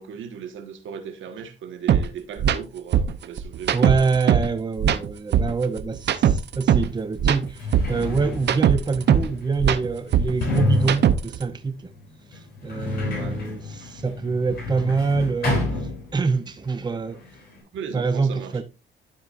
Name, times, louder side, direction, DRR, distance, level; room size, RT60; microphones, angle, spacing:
voice 1, 0.0-4.1 13.1-13.5 17.7-18.6, right 7 dB, 75° right, 1.5 m, -37 dB
sound 1, 1.9-2.0 2.4-2.6 2.9-4.5 4.8-6.9 7.2-9.3 9.6-11.4, right 9 dB, 60° right, 0.8 m, -20 dB
voice 2, 3.7-11.9 12.3-17.2 17.9-18.6, right 4 dB, 20° right, 0.7 m, -25 dB
Sliding door, 6.6-6.7 7.4-16.5 16.8-17.6, left 2 dB, 55° left, 4.8 m, -30 dB
12.5 x 4.4 x 2.5 m
cardioid pair, 90°, 20 cm